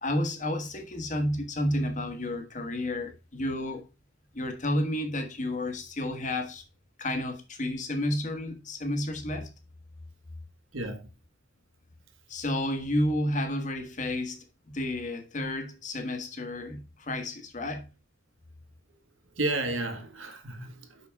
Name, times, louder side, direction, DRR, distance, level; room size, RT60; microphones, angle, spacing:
voice 1, 0.0-3.8 4.3-6.6 7.0-9.5 12.3-17.9, left 1 dB, 40° left, 1.4 m, -31 dB
voice 2, 10.7-11.1 18.9-19.0 19.2-21.1, right 2 dB, 80° right, 1.7 m, -33 dB
6.1 x 5.8 x 4.6 m
head